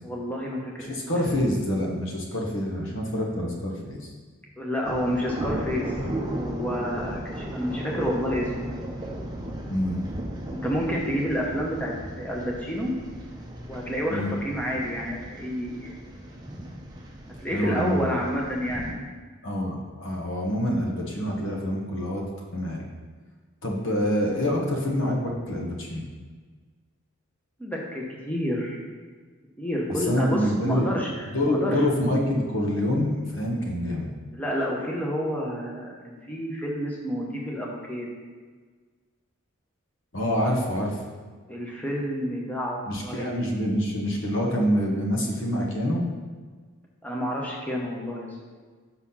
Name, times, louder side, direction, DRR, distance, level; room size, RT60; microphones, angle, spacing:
voice 1, 0.0-0.9 1.2-1.4 4.6-5.9 6.4-8.9 10.5-12.9 13.7-16.0 17.4-19.0 27.6-28.8 29.6-31.8 34.3-38.1 41.5-42.8 43.0-43.3 47.0-48.3, equal, 5° left, -3 dB, 0.9 m, -29 dB
voice 2, 0.9-4.1 9.7-10.0 14.1-14.3 17.5-18.2 19.4-22.9 23.6-26.1 30.1-34.1 40.1-41.0 42.9-46.0, equal, 60° left, 0 dB, 1.2 m, -26 dB
sound 1, 4.8-18.9, right 1 dB, 20° right, 0.7 m, -36 dB
5.9 x 4.1 x 5.6 m, 1.5 s
head